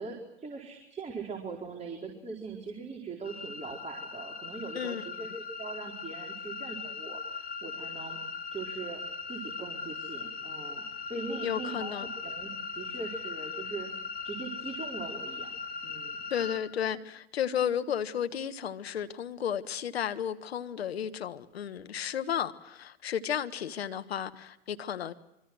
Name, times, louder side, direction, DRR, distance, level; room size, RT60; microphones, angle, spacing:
voice 1, 0.0-8.2 8.5-9.0 9.3-13.9 14.2-16.2, right 4 dB, 20° right, 4.5 m, -41 dB
sound 1, 3.2-16.6, left 4 dB, 30° left, 2.8 m, -39 dB
voice 2, 11.4-12.1 16.3-25.1, left 9 dB, 85° left, 1.4 m, -33 dB
25.5 x 24.5 x 6.3 m
hypercardioid pair, 90°, 30 cm